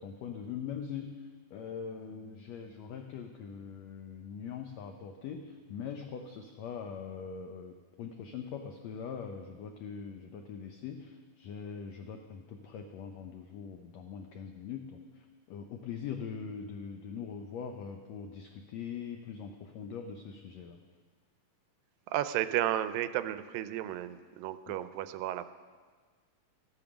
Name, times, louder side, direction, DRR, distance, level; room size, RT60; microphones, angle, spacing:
voice 1, 0.0-20.8 24.7-24.8, left 6 dB, 90° left, 5 dB, 1.5 m, -42 dB
voice 2, 22.1-25.5, right 12 dB, 85° right, 12 dB, 2.3 m, -33 dB
14.0 x 8.9 x 5.9 m, 1.5 s
omnidirectional pair, 3.9 m